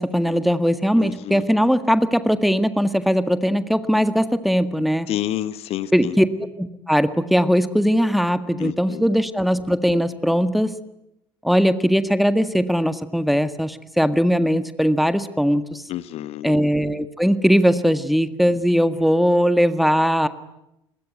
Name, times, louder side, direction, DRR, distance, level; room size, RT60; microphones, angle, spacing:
voice 1, 0.0-5.1 5.9-10.7 11.4-15.8 16.4-20.3, equal, ahead, 12 dB, 1.7 m, -20 dB
voice 2, 1.0-1.4 5.1-6.2 8.6-9.0 15.9-16.5, left 13 dB, 50° left, 15 dB, 1.2 m, -29 dB
28.0 x 22.0 x 9.4 m, 0.84 s
figure-of-eight pair, 60°, 13 cm